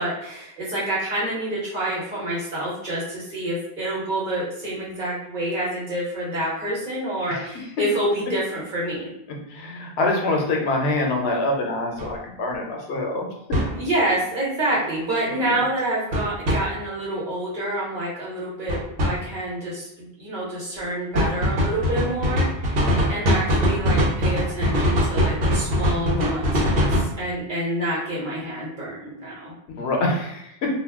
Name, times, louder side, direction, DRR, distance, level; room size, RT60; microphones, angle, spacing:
voice 1, 0.0-9.1 13.7-22.8 23.1-29.5, right 1 dB, 50° right, -6 dB, 1.2 m, -27 dB
voice 2, 9.5-13.3 15.5-15.6 22.7-23.3 29.7-30.7, left 2 dB, 80° left, 1 dB, 0.9 m, -25 dB
sound 1, 12.0-12.1 13.5-13.7 16.1-16.6 18.7-19.1 21.1-27.1, equal, 65° right, 0.9 m, -21 dB
2.3 x 2.2 x 3.4 m, 0.81 s
omnidirectional pair, 1.1 m